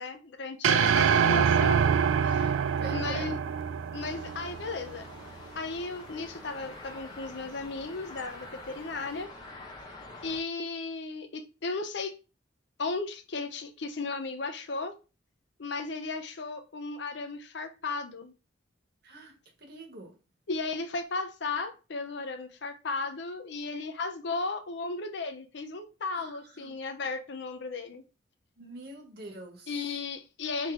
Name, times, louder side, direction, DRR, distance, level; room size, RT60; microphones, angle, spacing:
voice 1, 0.0-1.8 2.2-2.6 2.9-3.4 3.9-5.1 5.6-9.3 10.2-12.1 12.8-14.9 15.6-18.3 20.5-28.0 29.7-30.7, left 3 dB, 60° left, 0.6 m, -35 dB
sound 1, 0.6-5.0, right 7 dB, 90° right, 0.4 m, -25 dB
voice 2, 2.8-3.4 19.0-19.3 19.6-20.1 26.1-26.7 28.6-29.7, right 2 dB, 55° right, 1.4 m, -44 dB
sound 2, 4.0-10.4, left 2 dB, 20° left, 1.0 m, -46 dB
3.7 x 2.9 x 4.6 m
head